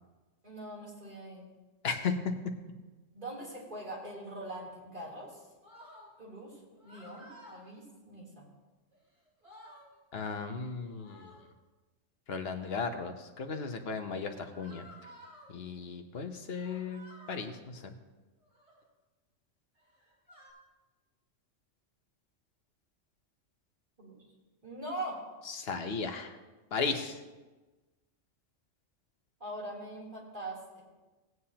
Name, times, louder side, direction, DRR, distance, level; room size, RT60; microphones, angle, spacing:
voice 1, 0.4-1.5 3.1-5.4 6.2-8.5 24.0-24.2 24.6-25.3 29.4-30.8, right 1 dB, 40° right, -6 dB, 3.5 m, -42 dB
sound 1, 5.6-6.1 6.8-7.6 8.9-9.0 9.3-9.9 10.9-11.5 12.4-13.0 14.5-15.5 16.5-17.5 18.4-18.8 19.7-20.5, equal, 60° right, 4.0 m, -54 dB
voice 2, 10.1-11.4 12.3-14.8 15.5-17.9 25.5-26.3 26.7-27.2, left 5 dB, 55° left, 6 dB, 1.1 m, -36 dB
17.0 x 9.3 x 2.9 m, 1.2 s
omnidirectional pair, 1.3 m